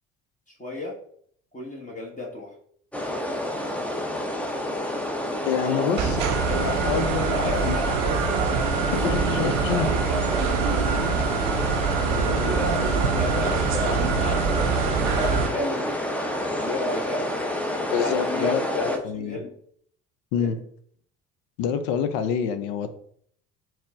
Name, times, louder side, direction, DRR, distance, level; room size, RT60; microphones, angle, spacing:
voice 1, 0.6-1.0 1.5-2.5 5.6-6.1 6.4-6.6 7.2-8.2 8.9-11.1 12.0-14.7 15.1-17.3 17.7-19.5 20.3-20.5, left 1 dB, 20° left, -3 dB, 1.0 m, -33 dB
sound 1, 2.9-19.0, left 1 dB, 5° left, 0.5 m, -29 dB
voice 2, 5.4-6.2 6.5-7.8 8.9-9.9 17.9-19.4 20.3-20.6 21.6-22.9, left 7 dB, 65° left, 10 dB, 0.6 m, -27 dB
sound 2, 6.0-15.5, right 6 dB, 90° right, 0.5 m, -25 dB
4.3 x 2.1 x 3.6 m, 0.62 s
hypercardioid pair, 60°, 37 cm